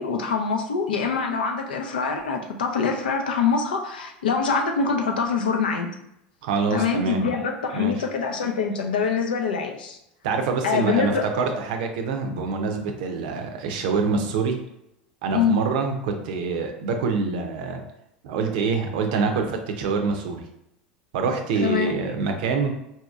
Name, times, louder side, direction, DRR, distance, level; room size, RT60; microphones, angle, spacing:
voice 1, 0.0-5.9 6.7-10.0 10.6-11.3 15.3-15.6 21.6-21.9, left 5 dB, 80° left, 3 dB, 0.5 m, -24 dB
voice 2, 6.4-7.3 7.7-7.9 10.2-14.6 15.2-17.8 18.2-20.4 21.1-22.7, right 4 dB, 65° right, 4 dB, 0.6 m, -25 dB
4.1 x 2.7 x 2.4 m, 0.82 s
hypercardioid pair, 80°, 5 cm